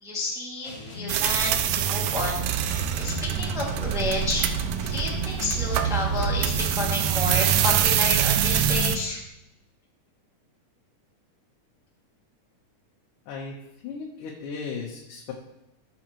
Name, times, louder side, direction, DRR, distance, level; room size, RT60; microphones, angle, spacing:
voice 1, 0.0-4.5 4.8-9.2, left 2 dB, ahead, -4 dB, 1.4 m, -31 dB
sound 1, 0.6-9.1, left 2 dB, 60° left, 3.3 m, -39 dB
sound 2, 1.1-9.0, right 10 dB, 80° right, 2.0 m, -25 dB
voice 2, 13.8-15.3, left 5 dB, 85° left, -2 dB, 2.7 m, -36 dB
13.5 x 7.2 x 3.0 m, 0.90 s
omnidirectional pair, 3.6 m